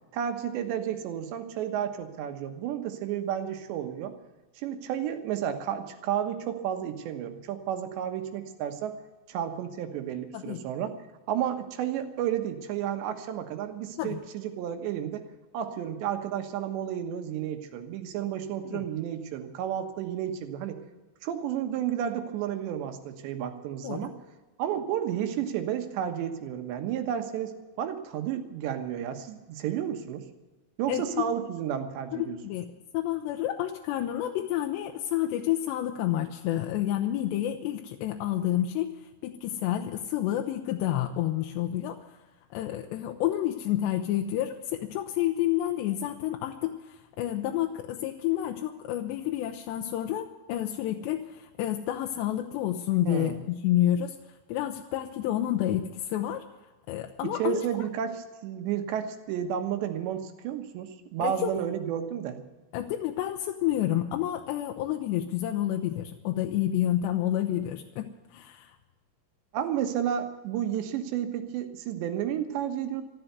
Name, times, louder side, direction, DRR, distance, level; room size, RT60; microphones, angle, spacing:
voice 1, 0.1-4.2 4.6-9.0 9.3-10.9 11.3-15.3 15.5-20.8 21.2-24.1 24.6-30.3 30.8-32.4 53.1-53.4 57.2-62.4 69.5-73.0, right 9 dB, 80° right, 7 dB, 3.5 m, -32 dB
voice 2, 30.9-31.2 32.1-32.7 32.9-38.9 39.2-42.0 42.5-54.2 54.5-56.4 56.9-57.7 61.2-61.5 62.7-68.8, left 12 dB, 85° left, 4 dB, 3.0 m, -29 dB
14.0 x 13.0 x 8.0 m, 1.2 s
omnidirectional pair, 5.1 m